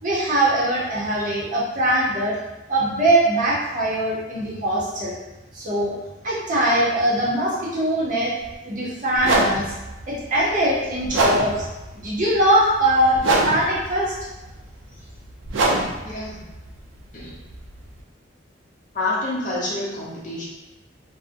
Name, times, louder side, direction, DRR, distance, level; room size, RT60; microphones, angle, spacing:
voice 1, 0.0-2.3 2.7-5.1 5.5-5.9 6.2-8.3 8.6-9.6 10.1-11.7 11.9-14.1, right 1 dB, 40° right, -6 dB, 0.7 m, -21 dB
sound 1, 8.4-8.5 9.2-18.0, right 2 dB, 80° right, 0.4 m, -26 dB
voice 2, 16.0-16.5 17.1-17.4 18.9-20.4, left 2 dB, 40° left, -6 dB, 0.6 m, -28 dB
2.6 x 2.0 x 2.5 m, 1.1 s
head